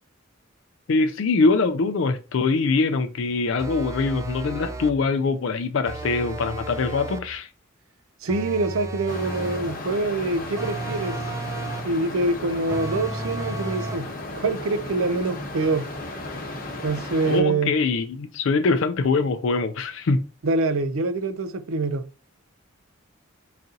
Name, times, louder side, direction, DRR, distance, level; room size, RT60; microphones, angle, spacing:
voice 1, 0.9-7.5 17.3-20.2, left 3 dB, 65° left, 0.4 m, -23 dB
sound 1, 3.6-5.1 5.9-7.4 8.3-9.8 10.6-12.0 12.7-14.1, right 2 dB, 15° right, 0.4 m, -33 dB
voice 2, 8.2-11.2 11.8-14.1 14.3-15.9 16.8-17.7 20.4-22.0, right 3 dB, 85° right, 0.5 m, -25 dB
sound 2, 9.1-17.4, left 2 dB, 45° left, 0.9 m, -35 dB
4.1 x 2.7 x 3.7 m
head